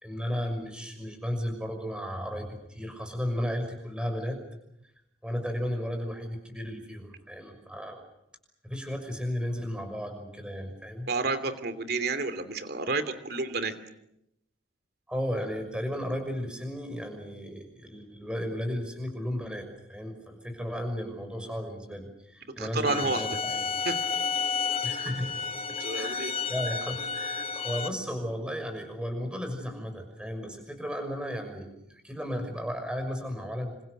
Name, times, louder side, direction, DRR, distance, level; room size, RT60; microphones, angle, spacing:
voice 1, 0.0-4.4 5.2-8.0 8.6-11.1 15.1-23.8 24.8-25.4 25.9-33.7, equal, 5° right, 5 dB, 6.1 m, -34 dB
voice 2, 11.1-13.7 22.5-23.4 23.8-24.0 25.8-26.3, right 3 dB, 55° right, 11 dB, 2.9 m, -30 dB
sound 1, 22.9-27.9, left 5 dB, 30° left, 1.5 m, -31 dB
28.0 x 26.5 x 6.8 m, 0.81 s
head